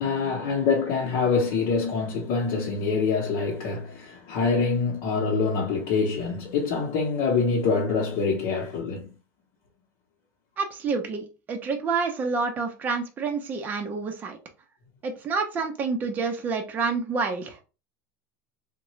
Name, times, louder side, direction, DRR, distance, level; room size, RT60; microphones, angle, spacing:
voice 1, 0.0-9.1, left 4 dB, 55° left, 0.8 m, -25 dB
voice 2, 10.6-14.4 15.0-17.6, right 4 dB, 20° right, 0.6 m, -28 dB
3.6 x 2.1 x 3.0 m
supercardioid pair, 165°, 9 cm